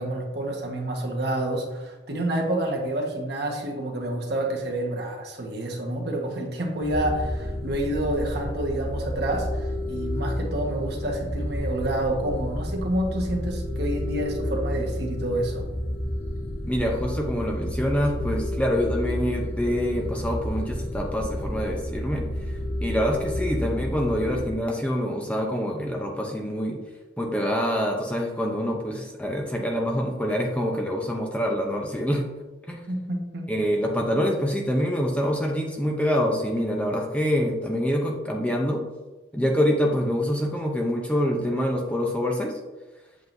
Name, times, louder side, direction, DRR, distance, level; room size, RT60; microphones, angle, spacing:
voice 1, 0.0-15.7 32.9-33.5, right 1 dB, 55° right, 0 dB, 1.4 m, -28 dB
sound 1, 6.8-24.6, left 1 dB, 30° left, 1.2 m, -30 dB
voice 2, 16.6-26.8 27.2-32.2 32.7-32.8 33.5-38.8 39.3-42.5, equal, 5° left, 0 dB, 0.7 m, -26 dB
8.0 x 7.5 x 2.7 m, 1.2 s
head